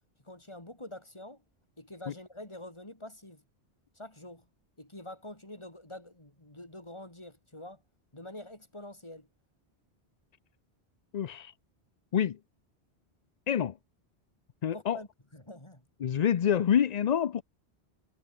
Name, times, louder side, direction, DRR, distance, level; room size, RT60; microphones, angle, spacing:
voice 1, 0.2-1.4 1.8-3.4 4.0-4.5 4.8-7.8 8.1-9.3 14.7-15.8, left 1 dB, 25° left, 3.8 m, -46 dB
voice 2, 11.1-11.5 12.1-12.4 13.5-13.8 14.6-15.0 16.0-17.4, left 9 dB, 50° left, 0.5 m, -27 dB
omnidirectional pair, 1.1 m